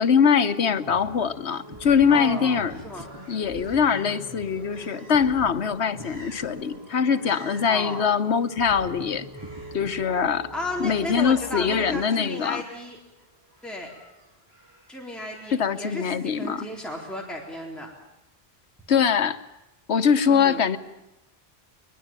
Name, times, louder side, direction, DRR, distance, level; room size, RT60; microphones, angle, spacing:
voice 1, 0.0-2.7 3.3-9.3 9.7-10.5 10.8-12.6 15.5-16.7 18.9-19.4 19.9-20.8, left 6 dB, 90° left, 12 dB, 1.4 m, -22 dB
sound 1, 0.6-12.0, right 1 dB, 20° right, 6.8 m, -43 dB
sound 2, 2.0-17.2, right 1 dB, 70° right, 4.4 m, -53 dB
voice 2, 2.1-2.6 2.8-3.1 7.7-8.1 10.5-13.0 13.6-13.9 14.9-17.9 20.3-20.6, left 1 dB, ahead, -1 dB, 3.8 m, -34 dB
22.0 x 22.0 x 8.9 m, 0.94 s
omnidirectional pair, 1.1 m